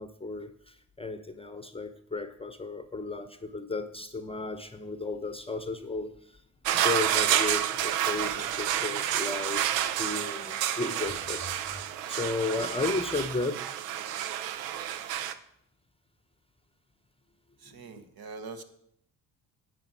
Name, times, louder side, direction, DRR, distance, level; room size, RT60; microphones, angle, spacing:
voice 1, 0.0-6.1 6.7-11.8 12.1-13.7 17.7-17.9, left 3 dB, 10° left, 10 dB, 0.9 m, -34 dB
sound 1, 6.6-15.3, right 11 dB, 80° right, 0.7 m, -29 dB
voice 2, 17.6-18.6, right 4 dB, 50° right, 8 dB, 1.3 m, -43 dB
10.5 x 8.1 x 4.6 m, 0.73 s
hypercardioid pair, 45°, 48 cm